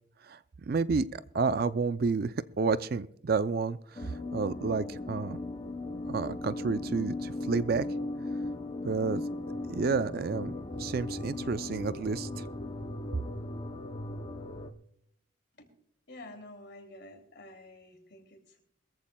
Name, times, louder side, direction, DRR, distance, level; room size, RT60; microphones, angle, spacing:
voice 1, 0.7-5.4 6.1-7.9 8.8-9.2 9.7-12.4, right 4 dB, 45° right, 14 dB, 0.4 m, -30 dB
sound 1, 4.0-14.7, left 2 dB, 25° left, 0.6 m, -37 dB
voice 2, 16.1-18.6, left 1 dB, 55° left, 5 dB, 2.6 m, -49 dB
22.0 x 14.5 x 2.3 m, 0.67 s
head